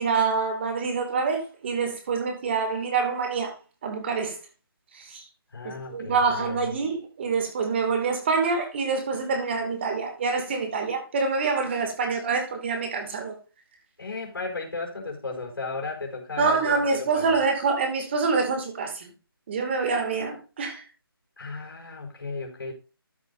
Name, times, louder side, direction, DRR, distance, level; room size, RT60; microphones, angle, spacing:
voice 1, 0.0-3.5 3.8-4.4 4.9-5.2 5.9-13.3 16.4-19.1 19.5-20.8, right 4 dB, 30° right, 2.4 m, -26 dB
voice 2, 5.5-6.8 14.0-17.4 21.4-22.7, left 3 dB, 65° left, 4.4 m, -35 dB
13.0 x 7.4 x 2.7 m
hypercardioid pair, 170°, 13 cm